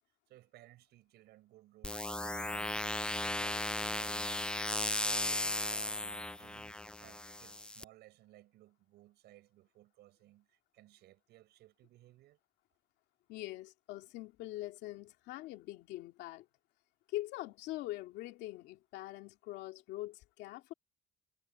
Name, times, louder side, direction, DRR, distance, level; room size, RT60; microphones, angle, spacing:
voice 1, 0.3-12.4, right 16 dB, 80° right, 6.7 m, -61 dB
sound 1, 1.8-7.8, left 1 dB, 5° left, 0.3 m, -36 dB
voice 2, 13.3-16.5 17.1-20.7, left 16 dB, 90° left, 2.4 m, -43 dB
cardioid pair, 110°, 17 cm